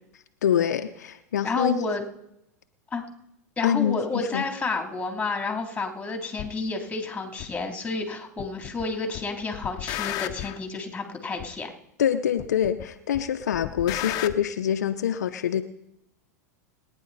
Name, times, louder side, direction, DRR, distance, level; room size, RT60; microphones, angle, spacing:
voice 1, 0.4-1.8 3.6-4.5 12.0-15.6, left 9 dB, 80° left, 8 dB, 0.8 m, -25 dB
voice 2, 1.4-2.1 2.9-3.0 3.6-11.7, left 3 dB, 15° left, 4 dB, 3.2 m, -30 dB
sound 1, 6.4-6.5 7.4-7.5 8.4-8.9 9.1-10.6 11.4-11.5 12.4-12.9 13.1-14.4, left 14 dB, 45° left, 1.0 m, -33 dB
29.0 x 10.0 x 4.2 m, 0.80 s
hypercardioid pair, 95°, 9 cm